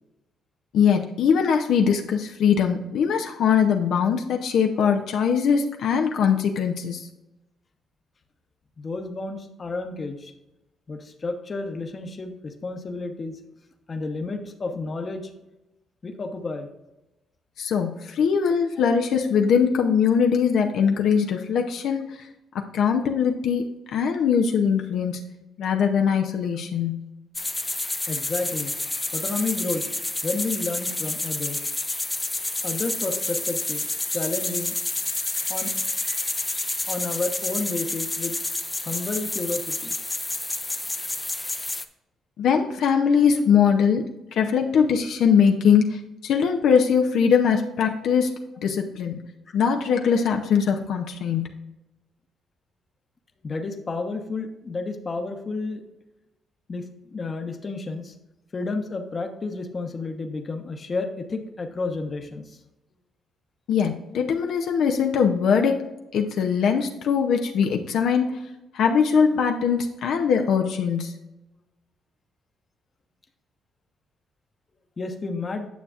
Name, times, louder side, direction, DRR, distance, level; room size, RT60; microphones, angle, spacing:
voice 1, 0.7-7.1 17.6-22.3 22.7-25.2 25.6-27.1 42.4-44.1 44.3-49.2 49.5-51.5 63.7-65.8 66.1-68.4 68.7-71.2, left 7 dB, 75° left, 3 dB, 0.6 m, -21 dB
voice 2, 8.8-10.3 10.9-13.4 13.9-15.3 16.0-16.7 28.1-28.7 29.1-29.9 30.2-31.6 32.6-33.8 34.1-34.8 35.5-35.7 36.9-38.4 38.8-39.9 49.5-49.6 53.4-55.8 56.7-58.1 58.5-62.6 75.0-75.7, left 3 dB, 35° left, 5 dB, 1.0 m, -31 dB
sound 1, 27.3-41.8, left 2 dB, 15° left, 0.6 m, -29 dB
9.4 x 6.9 x 2.5 m, 0.98 s
cardioid pair, 90°, 0 cm